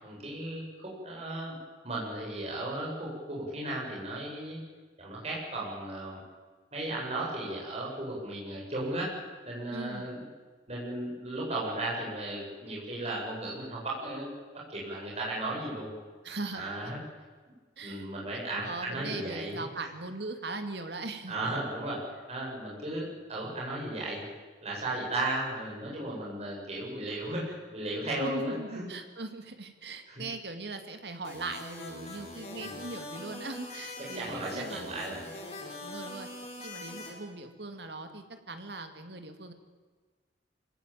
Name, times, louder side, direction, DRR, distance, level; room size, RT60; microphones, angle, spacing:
voice 1, 0.0-1.6 1.8-4.6 5.0-6.2 6.7-9.1 9.4-10.2 10.7-14.3 14.7-15.9 16.5-17.0 17.8-19.9 21.3-24.2 24.6-28.8 30.1-30.2 32.5-32.8 34.2-35.2, right 1 dB, 35° right, -4 dB, 7.6 m, -35 dB
voice 2, 9.7-10.1 16.2-16.6 17.8-18.1 18.5-21.3 28.2-34.9 35.8-36.3 36.6-39.5, right 2 dB, 65° right, 7 dB, 2.4 m, -40 dB
sound 1, 31.2-37.1, left 2 dB, 35° left, 6.2 m, -43 dB
26.5 x 16.5 x 9.1 m, 1.4 s
head